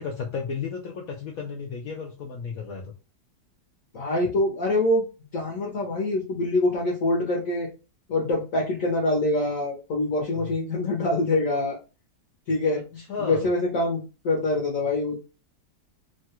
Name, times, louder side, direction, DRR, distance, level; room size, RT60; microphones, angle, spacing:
voice 1, 0.0-2.9 10.3-10.5 12.7-13.4, left 5 dB, 75° left, 1 dB, 0.8 m, -34 dB
voice 2, 3.9-5.0 5.3-7.7 8.1-11.8 12.5-12.8 13.2-15.3, left 2 dB, 55° left, -3 dB, 1.1 m, -25 dB
3.1 x 2.3 x 2.9 m, 0.31 s
omnidirectional pair, 2.0 m